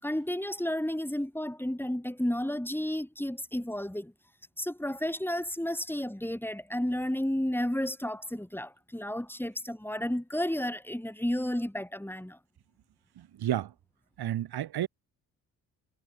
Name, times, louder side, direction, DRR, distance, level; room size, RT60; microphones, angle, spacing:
voice 1, 0.0-4.1 4.6-12.4, left 1 dB, 5° left, 5.1 m, -32 dB
voice 2, 13.2-13.7 14.2-14.9, right 12 dB, 60° right, 1.6 m, -31 dB
hypercardioid pair, 50°, 43 cm